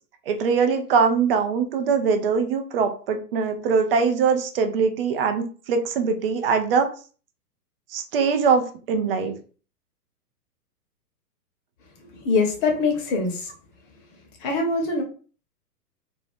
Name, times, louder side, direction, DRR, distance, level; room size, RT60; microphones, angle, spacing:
voice 1, 0.3-6.9 7.9-9.3, right 5 dB, 40° right, 7 dB, 0.5 m, -22 dB
voice 2, 12.1-13.5 14.4-15.0, left 3 dB, 35° left, 2 dB, 0.9 m, -23 dB
2.6 x 2.1 x 3.4 m, 0.39 s
hypercardioid pair, 125°, 47 cm